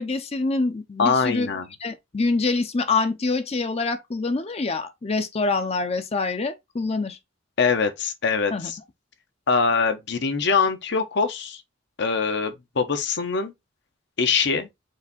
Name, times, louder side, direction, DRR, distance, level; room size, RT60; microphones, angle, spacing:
voice 1, 0.0-1.5 1.8-7.2 8.5-8.7, left 3 dB, 30° left, 0.5 m, -25 dB
voice 2, 1.0-1.7 7.6-8.8 9.5-11.6 12.0-13.5 14.2-14.7, left 5 dB, 60° left, 0.8 m, -23 dB
4.8 x 2.6 x 4.1 m
head